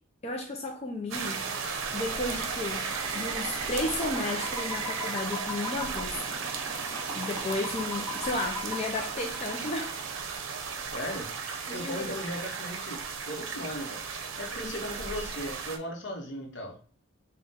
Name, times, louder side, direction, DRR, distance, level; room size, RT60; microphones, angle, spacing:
voice 1, 0.2-1.4 1.9-2.9 3.1-6.2 7.1-10.0 11.7-12.2, left 2 dB, 30° left, 0.4 m, -33 dB
sound 1, 1.1-15.8, right 5 dB, 85° right, 0.6 m, -35 dB
sound 2, 1.6-10.1, left 1 dB, 20° right, 1.1 m, -40 dB
voice 2, 10.8-11.3 11.6-14.0 14.4-16.8, equal, 65° left, 0.9 m, -37 dB
3.7 x 2.2 x 4.0 m
head